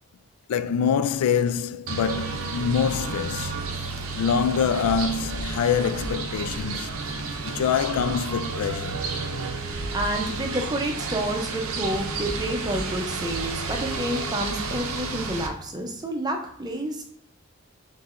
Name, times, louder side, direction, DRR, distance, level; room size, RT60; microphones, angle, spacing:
voice 1, 0.5-6.9 7.4-9.1, left 7 dB, 85° left, 0.3 m, -25 dB
sound 1, 1.9-15.5, right 4 dB, 75° right, 0.6 m, -31 dB
Wind instrument woodwind instrument, 8.7-15.5, left 1 dB, 45° left, 0.9 m, -43 dB
voice 2, 9.9-17.1, right 1 dB, 20° right, 0.6 m, -29 dB
4.5 x 4.0 x 2.5 m
head